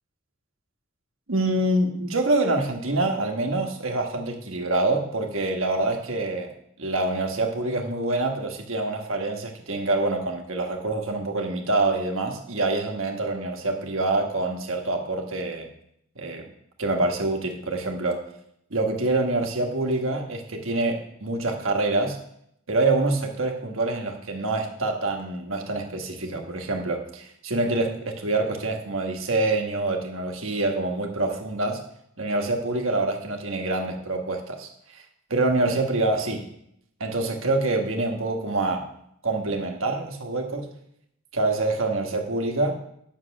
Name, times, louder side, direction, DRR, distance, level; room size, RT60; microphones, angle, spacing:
voice 1, 1.3-6.5 6.8-15.7 16.2-16.5 16.8-18.2 18.7-22.2 22.7-31.8 32.2-35.0 35.3-36.5 37.0-38.9 39.2-40.7 41.3-42.8, right 2 dB, 70° right, 3 dB, 1.4 m, -26 dB
8.4 x 6.6 x 6.0 m, 0.74 s
head